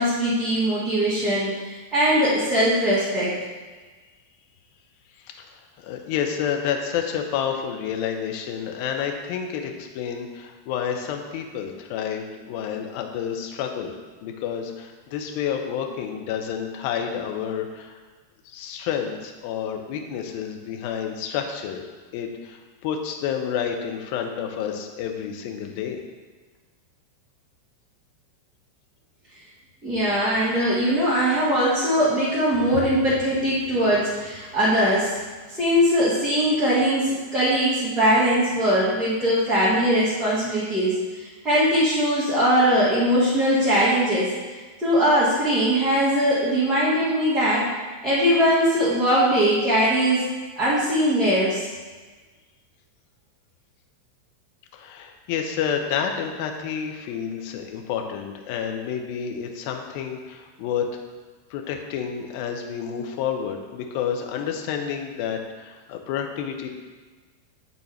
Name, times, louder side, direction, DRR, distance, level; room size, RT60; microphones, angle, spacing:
voice 1, 0.0-1.5 1.9-3.3 29.8-35.1 35.5-44.3 44.8-47.7 48.0-50.2 50.6-51.7, equal, 15° right, -12 dB, 1.7 m, -21 dB
voice 2, 5.3-13.9 14.2-18.0 18.4-21.8 22.1-26.0 54.7-60.9 61.5-66.7, left 8 dB, 45° left, 3 dB, 0.7 m, -29 dB
8.1 x 4.0 x 3.2 m, 1.4 s
figure-of-eight pair, 90°, 0 cm